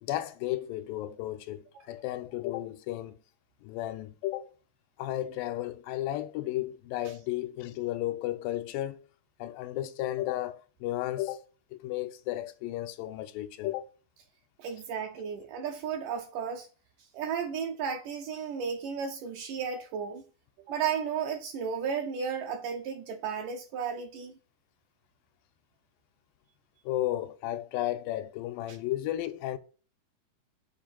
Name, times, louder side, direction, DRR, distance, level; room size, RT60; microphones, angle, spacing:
voice 1, 0.0-3.2 3.6-4.5 5.0-9.0 9.4-11.4 11.7-13.9 26.9-29.6, left 14 dB, 90° left, 2.3 m, -33 dB
voice 2, 14.6-16.7 17.1-20.2 20.7-24.4, right 7 dB, 80° right, 2.1 m, -34 dB
7.2 x 2.6 x 5.6 m
omnidirectional pair, 3.9 m